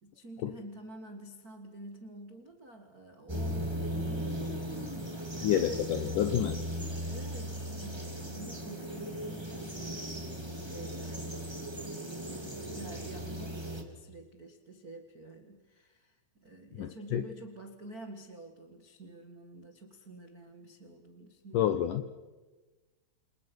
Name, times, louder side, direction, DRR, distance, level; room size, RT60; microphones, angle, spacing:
voice 1, 0.0-6.1 6.9-21.8, right 2 dB, 70° right, 5 dB, 0.8 m, -49 dB
sound 1, 3.3-13.8, equal, 10° right, 1.8 m, -37 dB
voice 2, 5.4-6.6 16.7-17.2 21.5-22.0, left 11 dB, 80° left, 10 dB, 1.9 m, -29 dB
28.5 x 28.0 x 6.2 m, 1.2 s
omnidirectional pair, 5.1 m